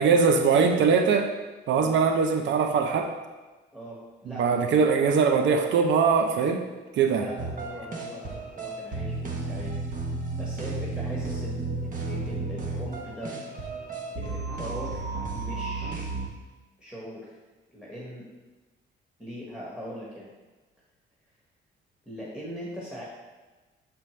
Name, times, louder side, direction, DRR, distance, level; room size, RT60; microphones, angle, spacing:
voice 1, 0.0-1.3 1.7-3.1 4.3-6.6 6.9-7.3, right 5 dB, 70° right, 4 dB, 0.6 m, -22 dB
voice 2, 3.7-5.2 7.2-9.7 10.4-13.3 14.1-15.0 15.3-16.1 16.8-17.4 17.7-18.3 19.2-20.3 22.0-23.0, equal, 5° right, -7 dB, 1.4 m, -40 dB
sound 1, 7.4-16.3, right 3 dB, 40° right, 1.0 m, -33 dB
6.8 x 4.4 x 3.2 m, 1.2 s
cardioid pair, 90°, 20 cm